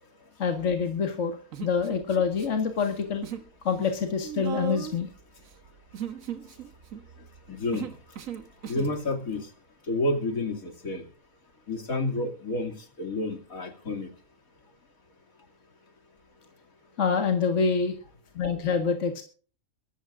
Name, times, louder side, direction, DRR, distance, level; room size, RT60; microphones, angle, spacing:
voice 1, 0.4-3.3 3.7-5.1 17.0-17.9 18.4-19.2, left 5 dB, 60° left, 5 dB, 2.0 m, -26 dB
Human voice, 1.5-2.5 2.7-3.5 3.8-9.0, right 7 dB, 70° right, 1.6 m, -37 dB
voice 2, 7.5-7.9 8.7-9.5 9.9-11.0 11.7-14.1, left 2 dB, 80° left, 2 dB, 3.1 m, -30 dB
23.0 x 13.5 x 2.5 m, 0.40 s
omnidirectional pair, 1.5 m